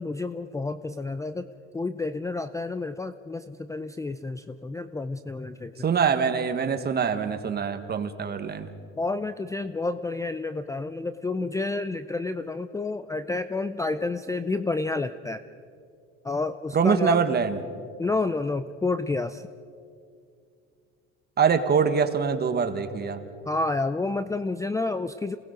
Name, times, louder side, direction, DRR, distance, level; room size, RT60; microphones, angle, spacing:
voice 1, 0.0-5.7 9.0-15.4 16.2-17.2 18.0-19.4 23.5-25.4, left 3 dB, 10° left, 12 dB, 0.5 m, -30 dB
voice 2, 5.8-8.7 16.7-17.6 21.4-23.2, right 6 dB, 35° right, 8 dB, 1.5 m, -24 dB
28.0 x 18.5 x 5.2 m, 2.3 s
cardioid pair, 120°, 29 cm